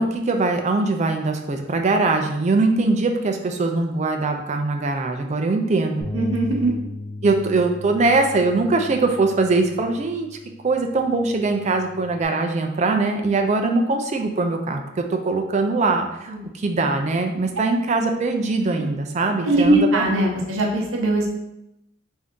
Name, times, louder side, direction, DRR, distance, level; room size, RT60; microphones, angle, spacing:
voice 1, 0.0-6.1 7.2-10.3 10.6-20.0, right 3 dB, 35° right, 4 dB, 0.4 m, -22 dB
Bass guitar, 6.0-12.3, left 2 dB, 45° left, 0.7 m, -36 dB
voice 2, 6.1-6.7 16.3-16.4 18.8-18.9 19.4-21.3, right 1 dB, 85° right, 0 dB, 0.7 m, -20 dB
3.4 x 2.6 x 3.6 m, 0.86 s
head